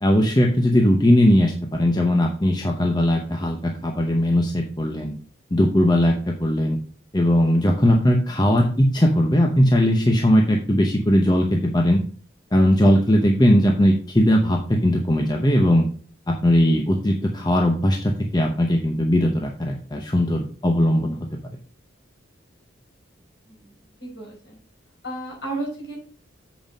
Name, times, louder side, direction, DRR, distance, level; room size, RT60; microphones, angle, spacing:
voice 1, 0.0-5.1 5.5-6.8 7.1-12.0 12.5-15.9 16.3-21.2, equal, 20° left, 2 dB, 0.7 m, -19 dB
voice 2, 24.0-24.6 25.0-26.0, right 2 dB, 55° left, -3 dB, 4.9 m, -33 dB
7.7 x 5.4 x 5.2 m, 0.41 s
head